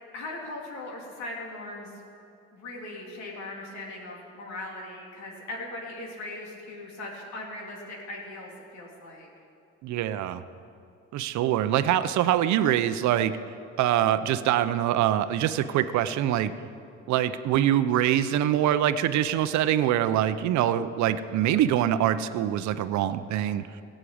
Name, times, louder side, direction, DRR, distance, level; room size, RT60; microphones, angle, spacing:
voice 1, 0.1-1.9 2.5-9.3, left 2 dB, 70° left, -1 dB, 3.2 m, -39 dB
voice 2, 9.8-10.4 11.1-13.3 13.8-16.5 17.1-23.6, right 11 dB, 75° right, 12 dB, 0.7 m, -24 dB
16.0 x 7.7 x 8.6 m, 2.5 s
cardioid pair, 90°, 29 cm